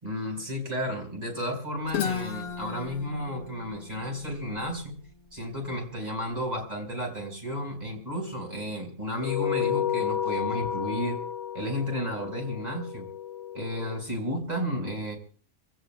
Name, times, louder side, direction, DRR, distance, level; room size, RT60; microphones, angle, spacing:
voice 1, 0.0-5.0 5.3-11.2 11.5-13.1 13.5-15.2, equal, 25° right, 1 dB, 5.2 m, -32 dB
Guitar, 1.9-5.7, left 7 dB, 75° left, 1.7 m, -35 dB
sound 1, 9.2-14.0, left 9 dB, 55° left, 1.0 m, -31 dB
27.5 x 17.0 x 2.3 m, 0.40 s
omnidirectional pair, 1.5 m